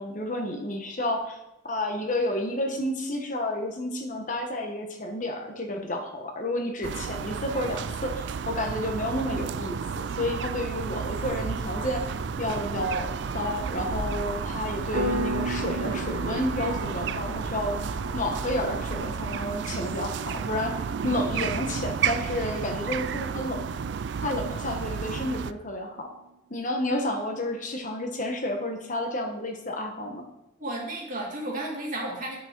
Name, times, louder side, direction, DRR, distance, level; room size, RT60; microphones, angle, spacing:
voice 1, 0.0-1.4 1.6-12.0 12.4-17.8 18.1-23.8 24.2-26.1 26.5-30.3, left 1 dB, 40° left, 3 dB, 1.1 m, -31 dB
sound 1, 6.8-25.5, right 6 dB, 60° right, 0.3 m, -32 dB
sound 2, 11.0-19.3, equal, 10° right, 2.0 m, -39 dB
Piano, 14.9-25.3, right 1 dB, 85° right, 1.3 m, -38 dB
voice 2, 27.0-27.3 30.6-32.4, right 1 dB, 40° right, -2 dB, 2.3 m, -33 dB
9.7 x 6.2 x 4.5 m, 0.92 s
head